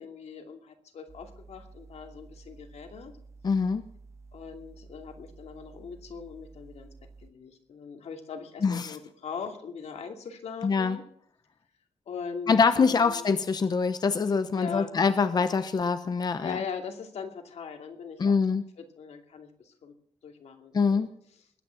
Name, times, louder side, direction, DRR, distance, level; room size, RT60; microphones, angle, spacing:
voice 1, 0.0-3.1 4.3-11.1 12.1-13.3 14.5-14.9 16.4-18.3 18.8-19.9 20.2-21.0, left 6 dB, 90° left, 5 dB, 2.6 m, -40 dB
sound 1, 1.1-7.3, right 3 dB, 25° right, 1.6 m, -51 dB
voice 2, 3.4-3.8 8.6-9.0 10.6-11.0 12.5-16.6 18.2-18.6 20.7-21.1, left 5 dB, 40° left, 11 dB, 0.8 m, -24 dB
21.0 x 9.5 x 5.8 m, 0.64 s
wide cardioid pair, 160°, 11 cm